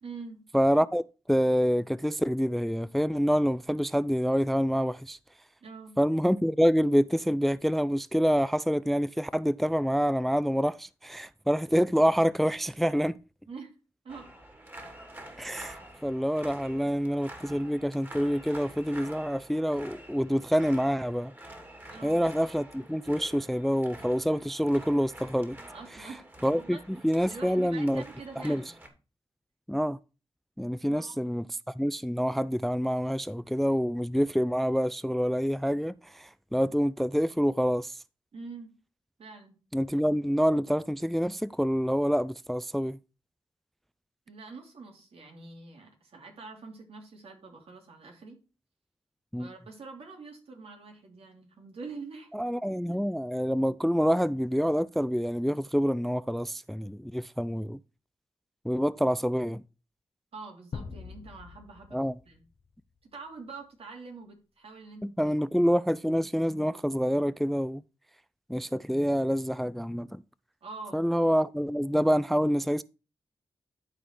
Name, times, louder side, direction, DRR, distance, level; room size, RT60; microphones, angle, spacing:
voice 1, 0.0-0.4 5.6-5.9 13.5-13.7 14.0-14.3 21.9-22.2 25.7-26.8 27.3-28.7 30.8-31.2 38.3-38.7 39.2-39.6 44.3-48.4 49.4-52.3 52.9-53.0 60.3-62.0 62.3-62.4 63.1-65.4 70.6-71.0, right 4 dB, 70° right, 2.9 m, -45 dB
voice 2, 0.5-1.0 1.3-5.2 6.0-13.2 15.4-21.3 22.0-25.6 26.4-28.0 28.4-28.6 29.7-30.0 30.6-31.5 31.8-37.9 39.7-43.0 49.3-49.5 52.4-57.8 58.6-59.6 61.9-62.1 65.0-67.8 68.5-70.2 70.9-72.8, equal, ahead, 0.3 m, -27 dB
sound 1, 14.1-28.9, right 1 dB, 20° right, 2.7 m, -48 dB
sound 2, 60.7-62.7, left 5 dB, 65° left, 1.1 m, -43 dB
12.0 x 4.2 x 4.5 m
cardioid pair, 60°, 10 cm